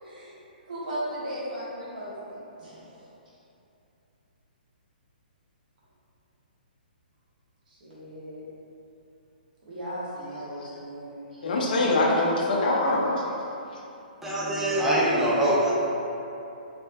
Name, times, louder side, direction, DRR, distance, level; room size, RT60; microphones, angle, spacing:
voice 1, 0.0-0.3 0.7-3.1 7.7-8.4 9.6-11.8, equal, 60° right, -8 dB, 1.3 m, -37 dB
voice 2, 11.4-13.0, left 2 dB, 60° left, -3 dB, 0.7 m, -23 dB
voice 3, 14.2-15.7, right 1 dB, 5° right, -8 dB, 0.5 m, -23 dB
3.4 x 3.2 x 2.8 m, 2.8 s
hypercardioid pair, 135°, 5 cm